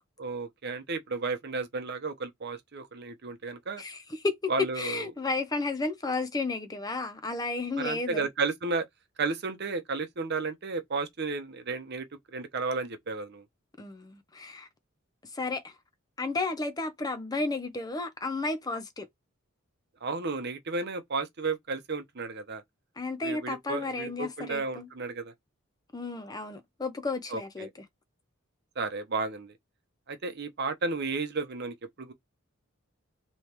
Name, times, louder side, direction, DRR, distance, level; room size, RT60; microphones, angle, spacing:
voice 1, 0.2-3.8 4.5-5.0 7.8-8.9 9.2-12.1 12.3-13.4 20.0-22.6 23.2-25.3 27.3-27.7 28.8-29.5 30.1-32.1, right 4 dB, 55° right, 0.8 m, -33 dB
voice 2, 3.8-8.3 13.8-14.7 15.3-15.7 16.2-19.1 23.0-24.9 25.9-27.7, left 3 dB, 20° left, 0.5 m, -32 dB
3.3 x 3.1 x 2.9 m
head